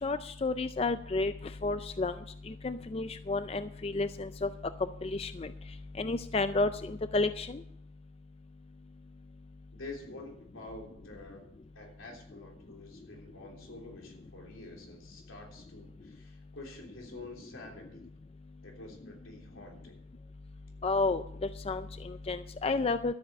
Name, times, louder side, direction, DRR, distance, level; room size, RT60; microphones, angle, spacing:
voice 1, 0.0-1.3 1.6-2.1 2.5-4.5 5.0-5.5 6.0-7.6 20.8-23.1, left 3 dB, 30° left, 11 dB, 0.4 m, -31 dB
voice 2, 9.7-18.1 18.6-20.0, left 2 dB, 90° left, 1 dB, 3.4 m, -48 dB
13.0 x 7.7 x 7.3 m, 0.71 s
head